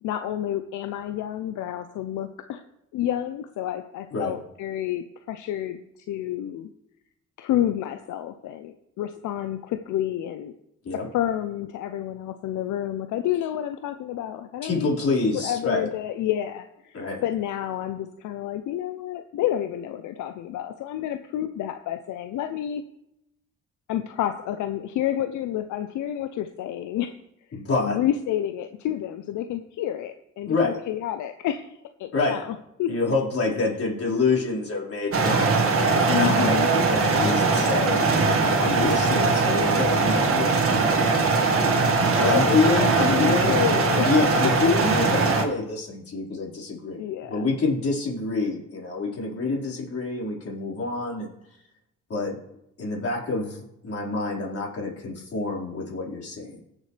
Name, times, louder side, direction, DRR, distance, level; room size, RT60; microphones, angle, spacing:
voice 1, 0.0-2.6 2.9-6.7 7.4-10.5 10.9-22.8 23.9-27.1 27.8-32.9 36.1-36.7 42.2-44.1 47.0-47.5, left 11 dB, 80° left, 8 dB, 0.7 m, -29 dB
voice 2, 14.6-15.9 16.9-17.2 27.5-28.0 30.5-30.8 32.1-32.4 32.9-36.4 36.7-38.1 38.6-41.3 42.1-43.5 44.0-47.0 47.3-51.3 52.1-52.4 52.8-56.6, left 3 dB, 50° left, -3 dB, 4.6 m, -27 dB
sound 1, 35.1-45.4, right 4 dB, 50° right, 1.8 m, -21 dB
18.0 x 7.4 x 3.3 m, 0.83 s
cardioid pair, 90°, 30 cm